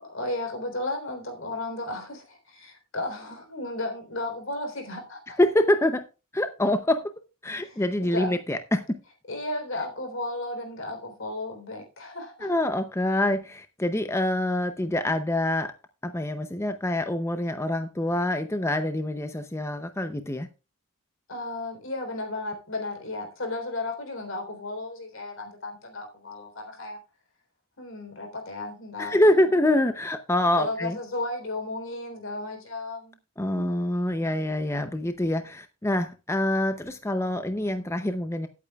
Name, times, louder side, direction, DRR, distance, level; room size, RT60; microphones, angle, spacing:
voice 1, 0.0-5.4 7.5-8.4 9.3-12.5 21.3-27.0 27.8-29.6 30.5-33.2 33.5-33.7, left 2 dB, 70° left, 3.7 m, -34 dB
voice 2, 5.4-6.0 6.3-7.0 7.4-8.8 12.4-15.7 16.0-20.5 29.0-31.0 33.4-38.5, left 1 dB, 15° left, 0.6 m, -25 dB
17.0 x 8.5 x 2.3 m
head